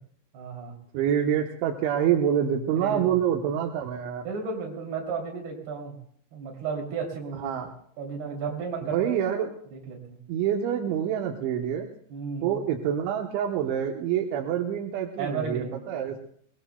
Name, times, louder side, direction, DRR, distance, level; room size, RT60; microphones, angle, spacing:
voice 1, 0.3-0.8 2.8-3.1 4.2-6.0 6.3-7.6 8.0-9.1 9.7-10.2 12.1-12.6 15.2-16.2, right 5 dB, 60° right, 0 dB, 4.8 m, -34 dB
voice 2, 0.9-4.2 7.4-7.7 8.8-9.5 10.3-11.9 12.4-16.2, right 9 dB, 85° right, 2 dB, 3.4 m, -26 dB
22.0 x 21.5 x 2.2 m, 0.62 s
omnidirectional pair, 5.2 m